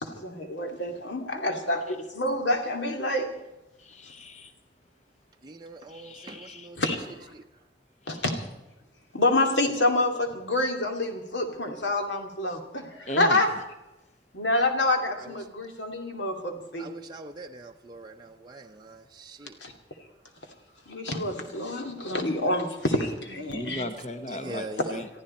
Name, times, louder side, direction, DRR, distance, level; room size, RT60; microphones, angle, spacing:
voice 1, 0.0-3.3 6.8-7.3 8.1-8.4 9.1-13.5 14.3-16.9 19.6-19.7 20.9-23.8, left 2 dB, 75° left, 4 dB, 2.4 m, -27 dB
voice 2, 3.8-4.5 5.9-6.7 8.0-8.2 13.1-13.4 23.5-25.1, left 1 dB, 40° left, 8 dB, 1.2 m, -37 dB
voice 3, 5.4-6.8 7.3-7.4 15.2-15.3 16.8-19.6 24.3-25.0, right 2 dB, 25° right, 2 dB, 0.6 m, -42 dB
23.0 x 14.0 x 4.3 m, 0.99 s
head